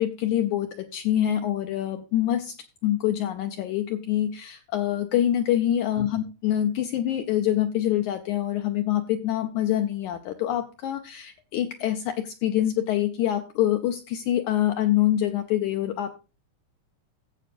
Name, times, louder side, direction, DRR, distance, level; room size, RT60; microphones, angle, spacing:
voice 1, 0.0-2.5 2.8-16.1, left 12 dB, 90° left, 7 dB, 1.7 m, -25 dB
16.0 x 7.6 x 2.5 m, 0.31 s
omnidirectional pair, 4.0 m